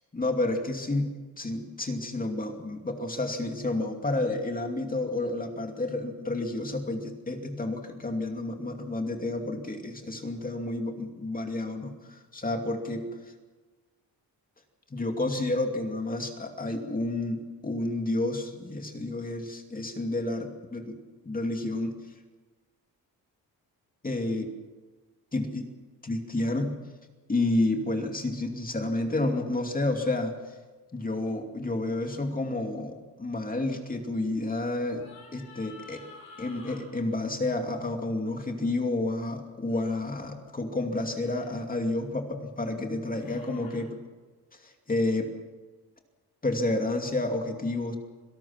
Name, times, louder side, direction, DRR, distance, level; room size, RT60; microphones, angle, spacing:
voice 1, 0.1-13.0 14.9-21.0 21.2-22.0 24.0-24.5 25.3-25.7 26.0-26.7 27.3-30.3 30.9-36.0 36.4-44.0 44.6-45.3 46.4-48.0, left 2 dB, 20° left, 4 dB, 2.6 m, -30 dB
sound 1, 31.1-31.3 34.9-36.8 39.7-40.0 41.2-41.5 43.1-43.8, left 4 dB, 65° left, 5.6 m, -50 dB
26.0 x 18.0 x 5.9 m, 1.3 s
cardioid pair, 110°, 37 cm